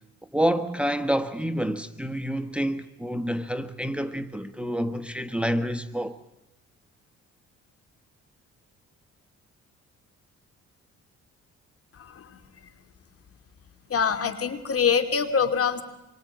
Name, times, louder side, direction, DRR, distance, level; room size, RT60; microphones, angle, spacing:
voice 1, 0.3-6.2, equal, 5° right, 1.3 m, -28 dB
voice 2, 11.9-12.4 13.9-15.8, left 6 dB, 50° left, 2.9 m, -25 dB
26.5 x 23.5 x 9.2 m
cardioid pair, 90°, 30 cm